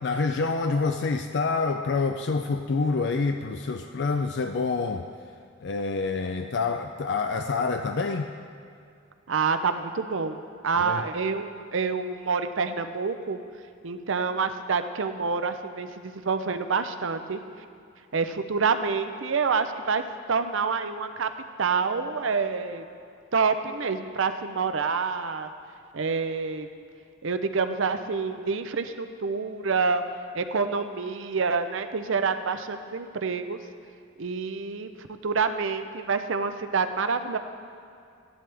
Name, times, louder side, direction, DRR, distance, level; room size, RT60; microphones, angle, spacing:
voice 1, 0.0-5.1 5.6-8.3 10.8-11.0, left 4 dB, 55° left, 6 dB, 0.4 m, -27 dB
voice 2, 9.3-13.4 13.8-17.4 18.1-20.0 20.3-21.3 21.6-22.8 23.3-25.5 25.9-26.7 27.2-30.0 30.3-33.6 34.2-37.4, right 5 dB, 65° right, 9 dB, 0.6 m, -27 dB
15.0 x 11.0 x 3.4 m, 2.5 s
head